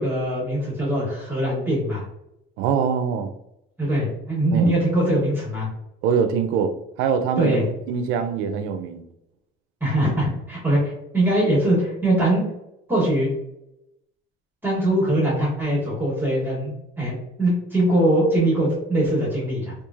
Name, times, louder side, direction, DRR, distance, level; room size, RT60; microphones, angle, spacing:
voice 1, 0.0-2.0 3.8-5.7 7.4-7.7 9.8-12.4 12.9-13.3 14.6-19.7, right 1 dB, 10° right, -6 dB, 1.0 m, -22 dB
voice 2, 2.6-3.3 4.5-4.8 6.0-7.6 7.9-9.0, right 6 dB, 75° right, 8 dB, 0.4 m, -23 dB
3.0 x 2.3 x 2.4 m, 0.83 s
cardioid pair, 130°, 21 cm